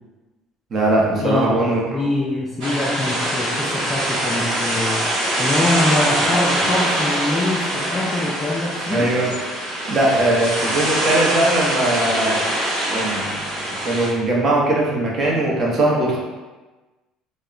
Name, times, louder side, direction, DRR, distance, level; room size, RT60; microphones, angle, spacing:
voice 1, 0.7-2.1 8.9-9.3 9.9-12.4 12.9-13.4 13.8-16.2, right 1 dB, 35° right, -4 dB, 0.6 m, -20 dB
voice 2, 1.2-1.6 1.9-5.1 5.4-9.1, left 2 dB, 20° left, -4 dB, 0.3 m, -24 dB
sound 1, 2.6-14.1, right 1 dB, 90° right, 0.6 m, -23 dB
2.9 x 2.0 x 2.4 m, 1.2 s
cardioid pair, 140°, 0 cm